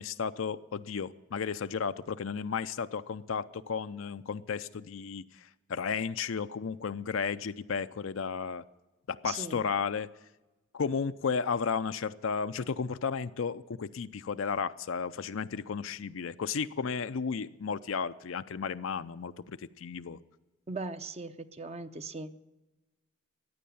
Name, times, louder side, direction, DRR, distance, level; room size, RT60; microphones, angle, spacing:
voice 1, 0.0-8.6 9.1-10.1 10.7-20.2, left 6 dB, 80° left, 10 dB, 0.5 m, -33 dB
voice 2, 9.3-9.6 20.7-22.4, right 3 dB, 30° right, 10 dB, 0.6 m, -39 dB
14.5 x 9.5 x 8.5 m, 1.1 s
head